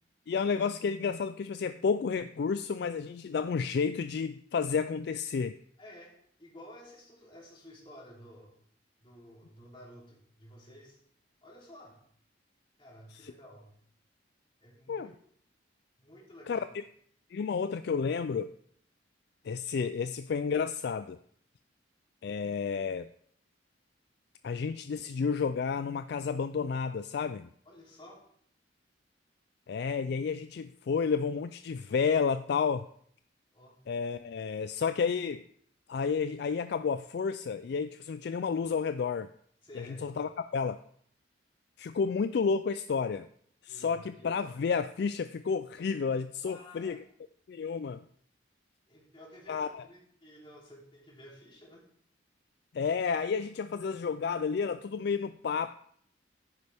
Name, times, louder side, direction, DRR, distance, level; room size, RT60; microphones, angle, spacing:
voice 1, 0.3-5.6 13.2-13.3 14.9-15.1 16.5-16.6 17.3-18.5 19.4-21.2 22.2-23.1 24.4-27.5 29.7-32.8 33.9-35.4 35.9-39.3 39.8-40.8 41.8-43.3 43.6-47.0 47.5-48.0 49.5-49.8 52.7-55.8, left 5 dB, 60° left, 12 dB, 0.3 m, -31 dB
voice 2, 5.8-8.5 9.0-11.0 11.4-12.0 12.8-13.7 14.6-15.1 16.0-16.7 27.6-28.2 33.5-33.7 39.6-40.2 43.7-44.4 46.4-47.0 48.9-51.8, equal, 25° left, -4 dB, 3.2 m, -52 dB
11.0 x 9.6 x 3.5 m, 0.63 s
head